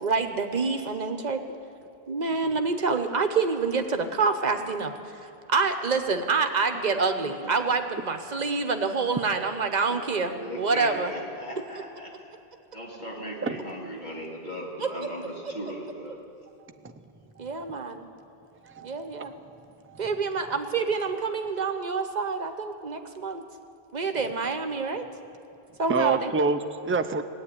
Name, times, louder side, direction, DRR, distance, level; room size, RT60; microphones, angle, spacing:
voice 1, 0.0-1.4 2.1-4.9 5.5-11.1 14.8-14.9 17.4-18.1 18.8-19.3 20.0-23.4 23.9-25.0 25.8-26.3, right 4 dB, 45° right, 7 dB, 1.0 m, -27 dB
voice 2, 7.2-7.5 9.4-12.3 12.7-16.2, equal, 45° left, -3 dB, 2.7 m, -38 dB
voice 3, 17.4-17.8 18.6-18.9 19.9-20.1 25.9-27.2, right 4 dB, 20° right, 8 dB, 0.4 m, -27 dB
17.5 x 8.5 x 9.8 m, 2.8 s
omnidirectional pair, 1.0 m